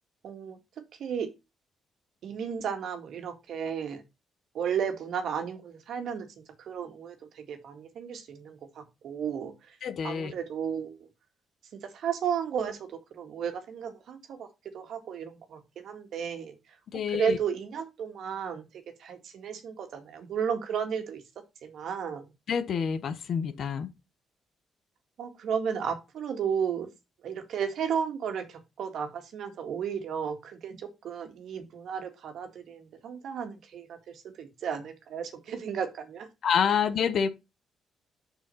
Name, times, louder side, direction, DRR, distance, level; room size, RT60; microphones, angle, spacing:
voice 1, 0.2-0.6 1.0-1.3 2.2-4.0 4.5-6.3 6.6-9.5 10.0-11.0 11.9-14.5 14.7-16.5 17.1-18.6 19.0-21.2 21.6-22.2 25.2-26.9 27.2-34.0 34.4-36.3, right 7 dB, 70° right, 1.9 m, -33 dB
voice 2, 9.8-10.3 16.9-17.4 22.5-23.9 36.4-37.3, left 7 dB, 60° left, 1.1 m, -27 dB
6.3 x 6.1 x 5.6 m
cardioid pair, 90°, 0 cm